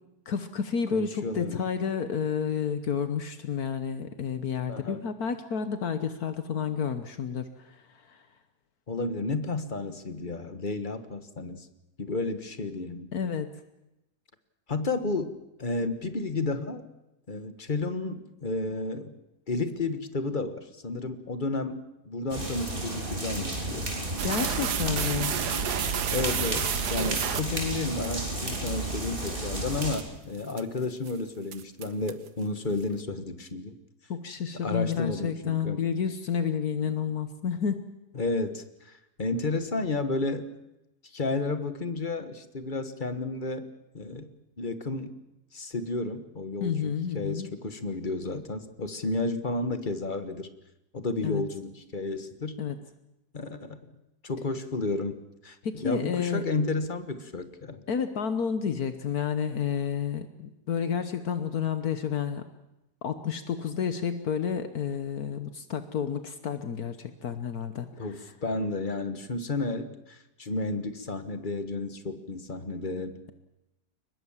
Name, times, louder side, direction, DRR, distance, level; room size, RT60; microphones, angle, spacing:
voice 1, 0.3-8.2 13.1-13.5 24.2-25.3 34.1-37.8 46.6-47.5 51.2-51.4 52.6-52.8 55.6-56.4 57.9-62.4 63.0-67.9, left 7 dB, 70° left, 10 dB, 1.6 m, -30 dB
voice 2, 0.9-1.6 4.7-5.0 8.9-11.7 12.0-13.1 14.7-15.3 15.6-16.9 17.3-19.1 19.5-21.8 22.0-23.9 26.1-33.7 34.6-35.8 38.1-40.5 41.0-43.7 43.9-44.3 44.6-45.1 45.5-50.5 50.9-52.6 53.3-53.8 54.2-57.8 68.0-73.2, left 3 dB, 30° left, 10 dB, 1.4 m, -32 dB
sound 1, 22.3-30.0, right 2 dB, 30° right, 3.9 m, -33 dB
sound 2, 24.2-28.1 28.5-28.6 29.2-29.3 29.7-30.0 30.5-30.8 31.1-31.2 31.5-32.3, right 9 dB, 85° right, 1.6 m, -30 dB
23.0 x 20.5 x 7.3 m, 0.92 s
omnidirectional pair, 1.7 m